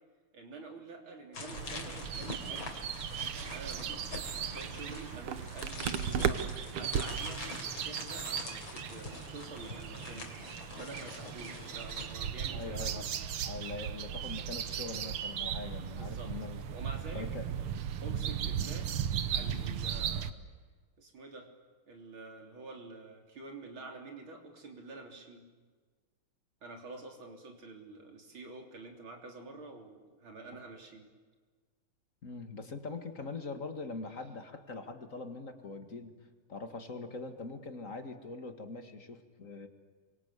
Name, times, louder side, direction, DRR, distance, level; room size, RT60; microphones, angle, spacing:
voice 1, 0.3-2.8 3.3-10.3 10.7-13.1 15.9-16.3 16.7-17.6 18.0-18.9 19.3-20.3 21.0-21.5 21.9-25.4 26.6-31.1, right 3 dB, 65° right, 3 dB, 4.2 m, -48 dB
sound 1, 1.3-12.1, left 3 dB, 60° left, 4.1 m, -45 dB
sound 2, 1.5-20.3, right 8 dB, 90° right, 2.1 m, -37 dB
voice 2, 12.5-13.1 13.4-16.6 17.1-17.5 32.2-36.1 36.5-39.7, left 3 dB, 40° left, 7 dB, 2.2 m, -42 dB
27.5 x 25.0 x 8.2 m, 1.5 s
omnidirectional pair, 2.4 m